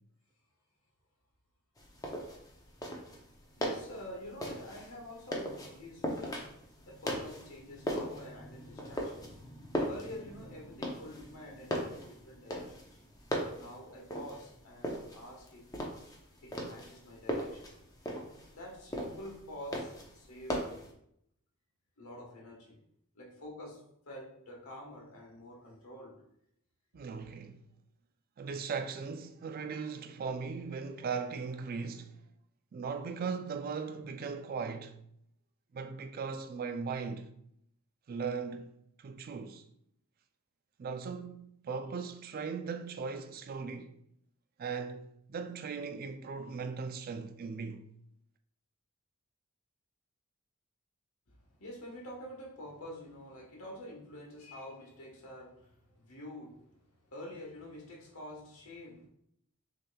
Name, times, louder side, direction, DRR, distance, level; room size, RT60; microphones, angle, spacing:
sound 1, 1.8-20.9, equal, 15° left, 0.6 m, -39 dB
voice 1, 3.6-6.5 6.9-9.4 9.8-12.9 13.5-15.7 16.4-17.7 18.5-20.9 22.0-22.8 23.1-26.2 51.3-59.1, left 1 dB, 85° left, 1.2 m, -48 dB
voice 2, 26.9-27.6 28.4-32.2 32.7-35.0 35.7-37.3 38.1-38.7 39.0-39.7 40.8-44.0 44.6-47.9, right 5 dB, 45° right, 0.3 m, -38 dB
6.3 x 2.9 x 2.2 m
head